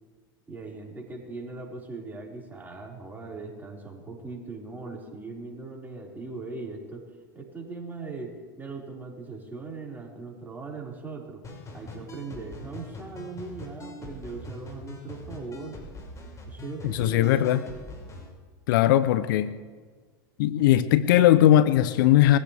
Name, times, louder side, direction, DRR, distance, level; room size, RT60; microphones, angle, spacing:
voice 1, 0.5-7.1 7.3-11.5 11.7-15.8 16.5-17.5, right 3 dB, 15° right, -3 dB, 5.5 m, -39 dB
sound 1, 11.4-18.3, left 2 dB, 25° left, 6.2 m, -43 dB
voice 2, 16.9-17.6 18.7-19.5 20.4-22.4, left 13 dB, 65° left, 14 dB, 0.8 m, -19 dB
23.0 x 15.5 x 3.6 m, 1.5 s
hypercardioid pair, 90°, 12 cm